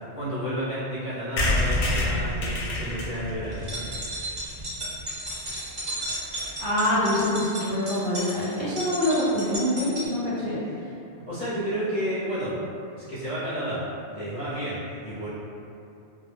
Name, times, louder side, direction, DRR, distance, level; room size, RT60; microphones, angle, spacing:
voice 1, 0.0-3.9 10.4-10.7 11.3-12.6 13.0-15.3, equal, 35° left, -12 dB, 0.7 m, -31 dB
sound 1, 1.4-5.0 5.5-5.6 5.8-5.9 6.1-6.2 6.4-6.6, left 1 dB, 70° left, 0.8 m, -28 dB
sound 2, 3.5-10.1, right 1 dB, 40° right, 0.9 m, -34 dB
voice 2, 6.6-10.6, left 1 dB, 60° right, -10 dB, 0.6 m, -25 dB
2.2 x 2.2 x 3.4 m, 2.7 s
omnidirectional pair, 1.2 m